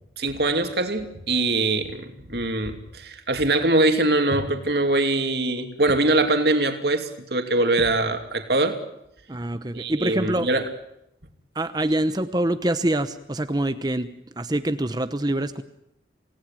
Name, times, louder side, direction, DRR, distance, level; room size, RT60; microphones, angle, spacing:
voice 1, 0.2-8.8 9.7-10.6, right 2 dB, 60° right, 6 dB, 2.7 m, -23 dB
voice 2, 9.3-10.5 11.5-14.1 14.4-15.6, right 1 dB, 20° right, 10 dB, 0.9 m, -25 dB
28.0 x 18.0 x 9.1 m, 0.82 s
head